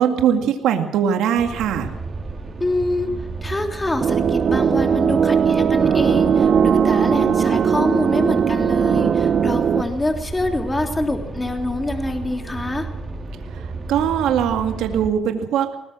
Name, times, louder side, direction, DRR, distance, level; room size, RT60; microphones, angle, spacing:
voice 1, 0.0-1.9 13.5-15.8, right 8 dB, 85° right, 5 dB, 2.1 m, -21 dB
sound 1, 1.4-15.1, right 3 dB, 35° right, 4.7 m, -32 dB
voice 2, 2.6-3.1 3.4-12.9, left 2 dB, 15° left, 4 dB, 3.5 m, -25 dB
moody slide, 4.0-9.8, right 7 dB, 55° right, 0.9 m, -18 dB
21.5 x 19.5 x 6.3 m, 0.88 s
cardioid pair, 90°, 0 cm